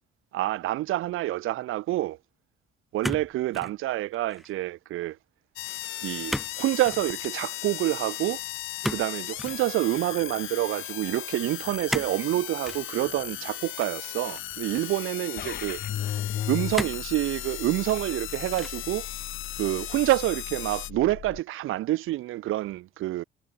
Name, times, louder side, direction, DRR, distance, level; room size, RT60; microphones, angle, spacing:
voice 1, 0.3-2.2 2.9-5.2 6.0-8.4 8.9-15.8 16.5-19.1 19.6-23.2, right 16 dB, 85° right, 0.9 m, -27 dB
sound 1, 3.0-3.8 4.1-4.6 6.3-6.6 6.8-7.1 8.8-9.6 11.9-12.2 12.6-12.8 13.8-14.6 15.3-15.4 16.7-17.1 17.7-18.2 18.6-18.9, equal, ahead, 1.7 m, -34 dB
sound 2, 5.6-20.9, left 14 dB, 75° left, 1.4 m, -37 dB
sound 3, 15.4-21.4, left 10 dB, 55° left, 5.5 m, -37 dB
cardioid pair, 155°, 21 cm